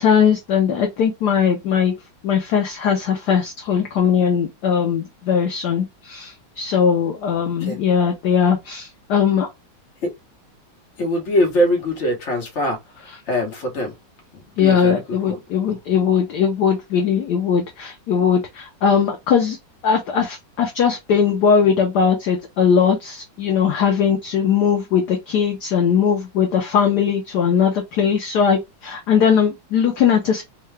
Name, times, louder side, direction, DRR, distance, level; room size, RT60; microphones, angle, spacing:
voice 1, 0.0-1.9 2.2-9.5 14.6-19.6 19.8-30.4, left 7 dB, 70° left, 1.0 m, -19 dB
voice 2, 11.0-12.8 13.3-13.9 14.6-15.0 15.3-15.4, equal, 45° left, 1.1 m, -22 dB
3.7 x 2.3 x 3.2 m
omnidirectional pair, 2.3 m